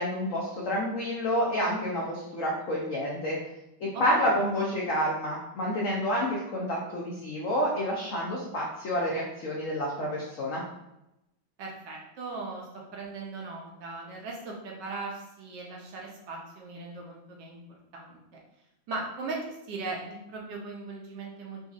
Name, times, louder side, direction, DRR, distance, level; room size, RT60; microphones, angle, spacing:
voice 1, 0.0-3.4 3.8-10.6, equal, 90° left, -4 dB, 0.6 m, -29 dB
voice 2, 3.9-4.5 11.6-18.2 18.9-19.4 19.7-21.7, right 3 dB, 70° right, -1 dB, 1.2 m, -39 dB
3.9 x 2.6 x 2.4 m, 0.88 s
omnidirectional pair, 2.2 m